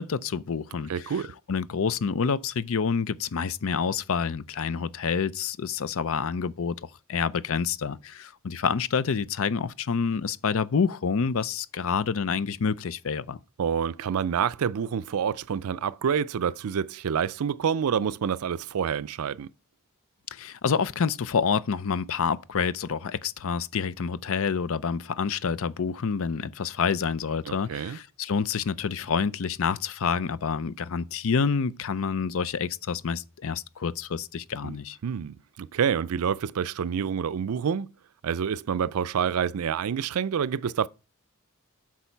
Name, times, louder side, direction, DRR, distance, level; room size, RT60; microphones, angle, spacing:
voice 1, 0.0-13.4 20.3-35.0, left 6 dB, 65° left, 0.5 m, -28 dB
voice 2, 0.9-1.3 13.6-19.5 27.5-28.0 34.6-34.8 35.0-37.9 38.2-40.9, right 7 dB, 75° right, 0.4 m, -27 dB
8.3 x 6.2 x 4.5 m
head